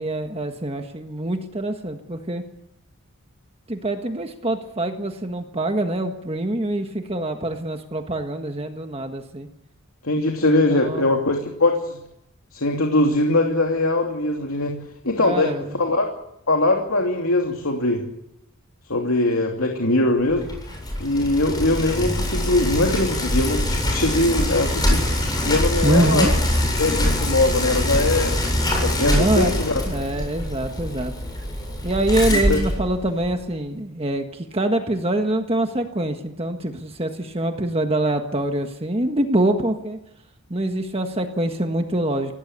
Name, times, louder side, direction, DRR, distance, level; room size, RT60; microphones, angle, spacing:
voice 1, 0.0-2.4 3.7-9.5 10.4-11.1 15.2-15.7 25.8-26.3 29.0-29.5 29.9-31.1 31.8-40.0 40.5-42.3, right 1 dB, 25° right, 5 dB, 1.5 m, -24 dB
voice 2, 10.0-12.0 12.5-14.8 15.0-16.0 16.5-18.0 18.8-20.5 21.0-26.3 26.8-28.4 28.8-29.8 32.3-32.6, left 2 dB, 75° left, 2 dB, 2.9 m, -21 dB
Bicycle, 20.3-33.4, left 1 dB, 20° left, 7.8 m, -24 dB
26.0 x 17.5 x 8.3 m, 0.81 s
head